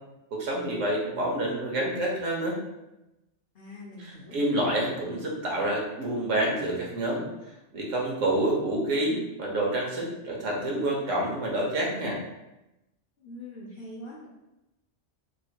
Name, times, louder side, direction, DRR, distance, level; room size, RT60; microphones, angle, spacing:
voice 1, 0.3-2.6 4.0-7.3 7.7-12.2, right 1 dB, 80° right, -2 dB, 1.1 m, -28 dB
voice 2, 3.5-4.4 13.2-14.3, left 1 dB, 60° left, -4 dB, 0.5 m, -43 dB
3.0 x 2.4 x 2.8 m, 0.93 s
omnidirectional pair, 1.3 m